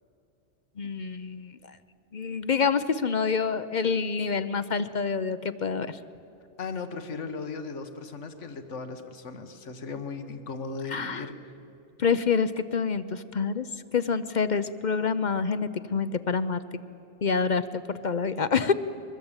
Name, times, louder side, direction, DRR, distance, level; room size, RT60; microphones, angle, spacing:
voice 1, 0.8-1.8 2.1-6.0 10.9-11.3 12.0-13.7 13.9-16.6 17.2-18.7, left 5 dB, 45° left, 13 dB, 0.7 m, -27 dB
voice 2, 6.6-11.5, left 4 dB, 85° left, 7 dB, 1.6 m, -37 dB
23.5 x 21.0 x 8.9 m, 2.7 s
omnidirectional pair, 1.2 m